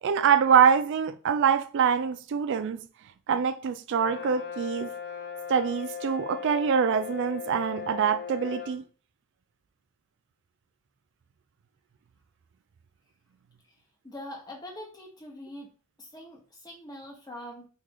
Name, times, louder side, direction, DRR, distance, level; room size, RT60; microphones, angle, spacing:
voice 1, 0.0-2.8 3.3-4.9 5.5-8.9, right 7 dB, 55° right, 0.3 m, -24 dB
Brass instrument, 3.9-8.8, left 7 dB, 45° left, 0.5 m, -38 dB
voice 2, 14.0-15.7 16.0-17.7, left 1 dB, 20° left, 0.9 m, -43 dB
3.1 x 2.4 x 3.7 m
head